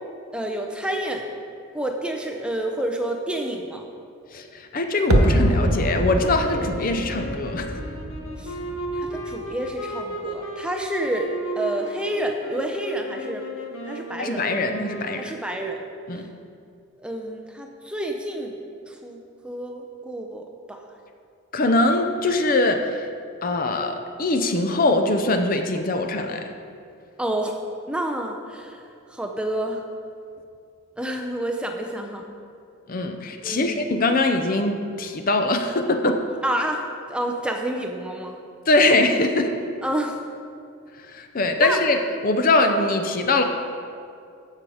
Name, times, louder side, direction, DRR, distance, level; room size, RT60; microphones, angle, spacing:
voice 1, 0.3-1.3 1.7-3.9 8.4-8.6 9.0-13.5 13.9-14.5 15.2-15.8 16.2-16.3 17.0-18.6 18.9-19.2 19.4-20.8 27.2-27.6 27.9-28.8 29.1-29.8 31.0-32.2 33.4-33.8 36.4-36.8 37.1-38.4 39.8-40.2 41.6-41.8, right 1 dB, 5° right, 2 dB, 0.6 m, -29 dB
voice 2, 4.3-7.7 14.2-15.3 16.1-16.3 21.5-23.0 23.4-26.5 32.9-36.2 38.7-39.5 41.1-42.0 42.2-43.4, left 2 dB, 40° left, 6 dB, 0.6 m, -22 dB
sound 1, 5.1-15.4, equal, 70° left, 1.5 m, -34 dB
sound 2, 5.1-10.0 10.3-10.4, right 1 dB, 90° right, 1.0 m, -25 dB
14.5 x 5.7 x 4.9 m, 2.4 s
head